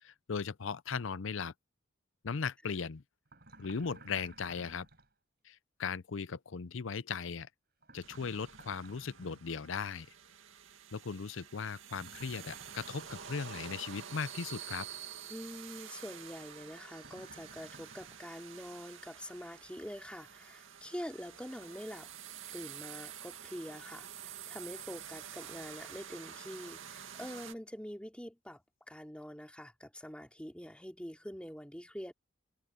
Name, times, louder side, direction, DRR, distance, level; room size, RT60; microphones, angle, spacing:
voice 1, 0.0-1.5 2.2-3.0 3.6-4.9 5.4-7.5 7.9-10.1 10.9-14.9, left 5 dB, 70° left, 0.6 m, -38 dB
sound 1, 3.2-5.1 7.8-9.5 11.9-13.8 17.0-18.2, right 2 dB, 50° right, 5.0 m, -56 dB
sound 2, 8.0-27.5, right 8 dB, 75° right, 2.2 m, -49 dB
sound 3, 12.0-22.6, right 7 dB, 25° right, 5.7 m, -67 dB
voice 2, 15.3-22.1 22.5-32.1, equal, 5° left, 3.0 m, -45 dB
head